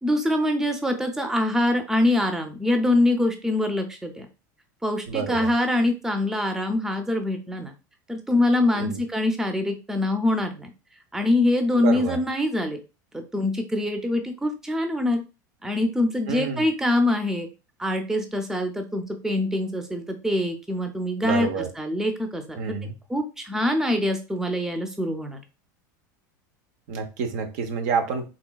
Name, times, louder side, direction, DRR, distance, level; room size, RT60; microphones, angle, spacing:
voice 1, 0.0-4.3 4.8-7.7 8.1-10.7 11.1-12.8 13.1-15.2 15.6-17.5 17.8-22.6 23.1-25.4, left 1 dB, 5° right, 6 dB, 0.5 m, -24 dB
voice 2, 5.1-5.5 8.7-9.0 11.8-12.2 16.3-16.7 21.2-21.7 22.6-22.9 26.9-28.3, right 6 dB, 65° right, 6 dB, 0.7 m, -28 dB
3.9 x 2.2 x 2.2 m, 0.29 s
hypercardioid pair, 95°, 10 cm